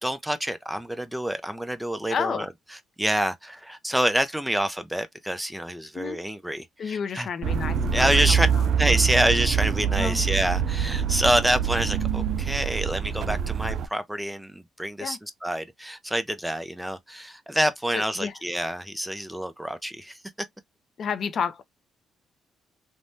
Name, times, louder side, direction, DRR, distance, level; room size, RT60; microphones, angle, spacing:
voice 1, 0.0-2.5 3.0-7.3 7.9-8.5 8.8-20.2, equal, 5° right, 0.5 m, -27 dB
voice 2, 2.1-2.5 5.9-6.2 6.8-8.6 10.0-10.2 15.0-15.2 17.9-18.3 21.0-21.6, left 7 dB, 55° left, 0.4 m, -31 dB
sound 1, 7.4-13.9, right 7 dB, 65° right, 0.3 m, -25 dB
3.3 x 2.1 x 2.6 m
cardioid pair, 90°, 0 cm